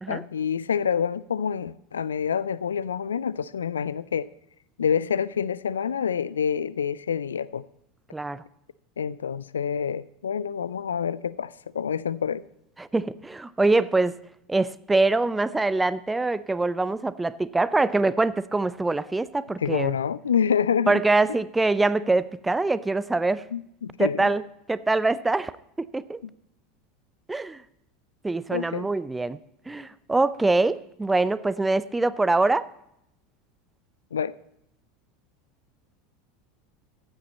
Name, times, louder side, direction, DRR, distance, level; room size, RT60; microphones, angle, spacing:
voice 1, 0.1-4.3 4.8-7.6 9.0-12.4 19.6-21.0 23.5-24.3 28.5-28.9 34.1-34.3, left 7 dB, 80° left, 0.3 m, -27 dB
voice 2, 8.1-8.4 12.8-14.2 14.5-20.0 20.9-23.5 24.0-24.4 24.7-25.5 25.8-26.2 27.3-27.6 28.2-29.4 29.7-32.7, right 3 dB, 10° right, 0.5 m, -24 dB
15.0 x 9.0 x 4.1 m
figure-of-eight pair, 80°, 0 cm